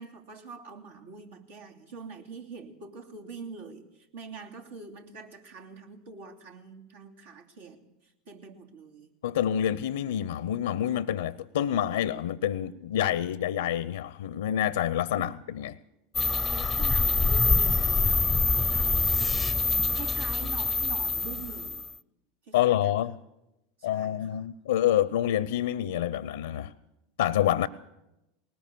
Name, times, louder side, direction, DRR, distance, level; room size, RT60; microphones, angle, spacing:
voice 1, 0.0-9.1 15.1-15.4 16.5-21.9 22.4-22.9 23.8-24.5 27.4-27.6, right 5 dB, 75° right, 2.9 m, -45 dB
voice 2, 9.2-15.8 22.5-23.2 23.8-26.7 27.2-27.7, left 11 dB, 75° left, 0.6 m, -27 dB
sound 1, 16.1-21.9, left 4 dB, 15° left, 0.6 m, -25 dB
20.0 x 19.0 x 6.9 m
hypercardioid pair, 85°, 0 cm